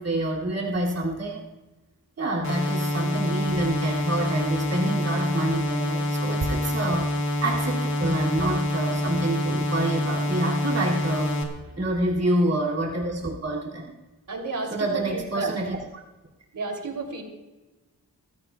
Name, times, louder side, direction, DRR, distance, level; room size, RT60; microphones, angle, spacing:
voice 1, 0.0-1.5 2.2-7.1 7.4-11.4 11.8-13.9 14.7-15.8, right 1 dB, 45° right, -3 dB, 2.5 m, -27 dB
sound 1, 2.4-11.4, left 1 dB, 50° left, 2.5 m, -26 dB
voice 2, 14.3-15.5 16.5-17.2, right 3 dB, 65° right, 2 dB, 3.0 m, -32 dB
24.5 x 15.5 x 2.3 m, 1.1 s
wide cardioid pair, 135°, 35 cm